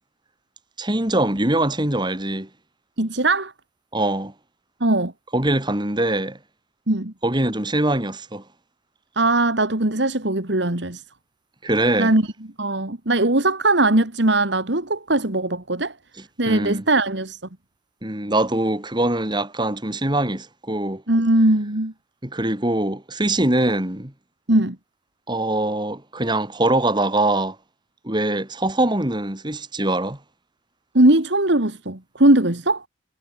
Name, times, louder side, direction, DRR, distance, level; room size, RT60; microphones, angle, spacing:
voice 1, 0.8-2.5 3.9-4.3 5.3-6.4 7.2-8.4 11.6-12.1 16.5-16.9 18.0-21.0 22.2-24.1 25.3-27.6 28.0-30.2, right 1 dB, 25° right, 2.7 m, -23 dB
voice 2, 3.0-3.5 4.8-5.1 6.9-7.1 9.2-11.0 12.0-12.2 12.6-15.9 16.4-17.4 21.1-21.9 24.5-24.8 30.9-32.8, right 2 dB, 65° right, 2.5 m, -19 dB
head